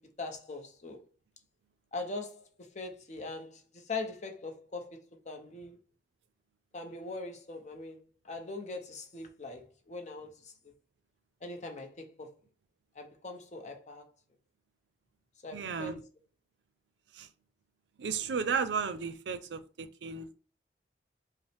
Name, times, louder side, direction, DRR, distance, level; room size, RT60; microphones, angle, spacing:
voice 1, 0.2-1.0 1.9-5.8 6.7-8.0 8.2-10.5 11.4-12.3 13.0-14.0 15.4-16.0, left 3 dB, 40° left, 0.7 m, -41 dB
voice 2, 15.5-16.0 17.1-17.3 18.0-20.3, right 5 dB, 85° right, 0.5 m, -34 dB
5.1 x 2.1 x 3.4 m
head